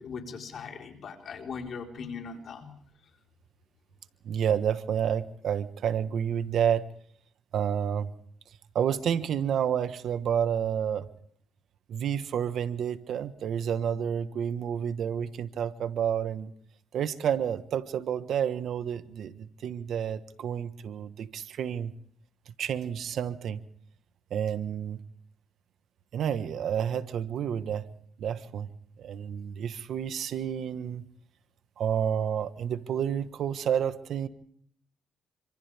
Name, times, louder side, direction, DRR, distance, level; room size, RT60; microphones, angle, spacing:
voice 1, 0.0-2.8, left 5 dB, 55° left, 2 dB, 4.3 m, -39 dB
voice 2, 4.2-6.8 7.5-8.1 8.7-11.1 11.9-16.5 16.9-21.9 22.5-23.6 24.3-25.0 26.1-27.9 28.2-28.7 29.0-31.0 31.8-34.3, right 8 dB, 70° right, 12 dB, 1.3 m, -30 dB
28.0 x 26.0 x 3.5 m, 0.63 s
cardioid pair, 90°, 0 cm